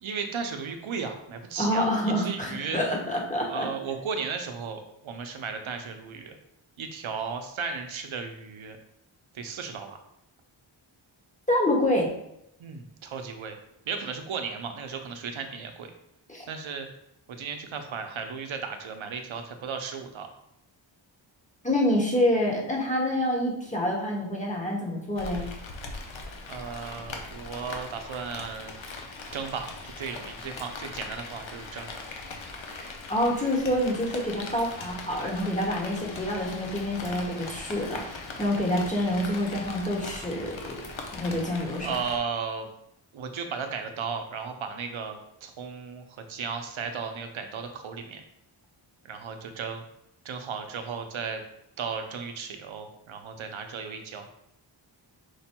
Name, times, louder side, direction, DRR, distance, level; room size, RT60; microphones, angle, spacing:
voice 1, 0.0-2.8 3.5-6.4 6.8-8.8 9.3-10.0 12.6-13.6 13.9-15.9 16.5-16.9 17.3-20.3 26.5-28.7 29.3-31.9 41.8-42.7 43.1-48.2 49.0-49.8 50.2-51.4 51.8-54.3, right 5 dB, 80° right, 6 dB, 0.7 m, -35 dB
voice 2, 1.6-3.7 11.5-12.1 16.3-16.4 21.6-25.5 33.1-40.8 41.1-41.9, left 1 dB, 15° left, -2 dB, 1.1 m, -27 dB
Rain, 25.2-42.2, left 3 dB, 75° left, 0.8 m, -40 dB
4.7 x 2.2 x 4.3 m, 0.80 s
wide cardioid pair, 95°, 47 cm